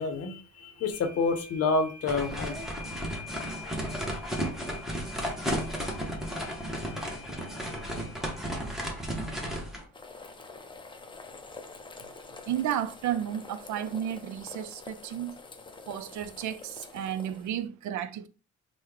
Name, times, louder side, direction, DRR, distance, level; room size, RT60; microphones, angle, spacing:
voice 1, 0.0-2.6, left 4 dB, 55° left, 0.7 m, -28 dB
sound 1, 0.9-8.7, left 5 dB, 45° right, 1.5 m, -48 dB
sound 2, 2.1-9.8, equal, ahead, 0.8 m, -34 dB
sound 3, 9.9-17.6, left 3 dB, 15° left, 0.4 m, -47 dB
voice 2, 12.5-15.3 15.9-18.3, right 10 dB, 70° right, 0.5 m, -32 dB
3.0 x 2.1 x 3.6 m
cardioid pair, 90°, 30 cm